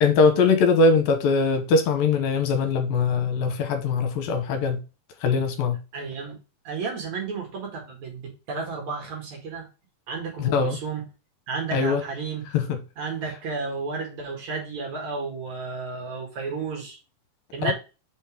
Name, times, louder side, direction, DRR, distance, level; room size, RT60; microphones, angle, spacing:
voice 1, 0.0-4.8 5.2-5.8 10.4-10.8 11.7-12.0 12.5-12.8 17.6-17.7, left 4 dB, 75° left, 2.6 m, -21 dB
voice 2, 5.9-6.4 6.6-9.7 10.1-11.0 11.5-12.5 13.0-17.0 17.5-17.7, right 4 dB, 50° right, 2.9 m, -32 dB
6.1 x 5.3 x 5.0 m
omnidirectional pair, 4.5 m